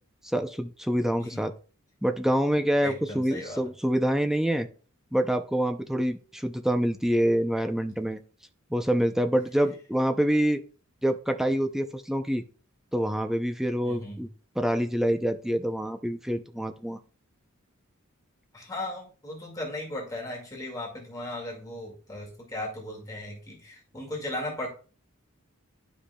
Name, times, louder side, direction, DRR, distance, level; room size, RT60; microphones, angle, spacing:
voice 1, 0.2-1.5 2.0-4.7 5.1-8.2 8.7-10.6 11.0-12.4 12.9-14.3 14.6-17.0, equal, ahead, 7 dB, 0.5 m, -26 dB
voice 2, 2.8-3.6 13.8-14.2 18.5-24.7, left 1 dB, 15° left, -3 dB, 2.0 m, -37 dB
11.5 x 5.1 x 2.3 m, 0.39 s
head